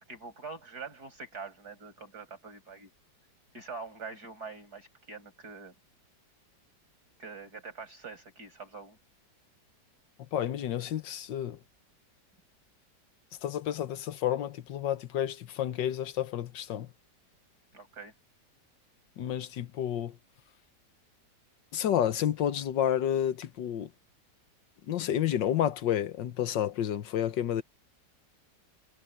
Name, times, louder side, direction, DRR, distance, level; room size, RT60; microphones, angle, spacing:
voice 1, 0.1-2.9 3.5-5.8 7.2-9.0 17.7-18.1, right 4 dB, 60° right, 6.8 m, -44 dB
voice 2, 10.3-11.6 13.4-16.9 19.2-20.2 21.7-23.9 24.9-27.6, left 10 dB, 80° left, 1.7 m, -30 dB
omnidirectional pair, 1.9 m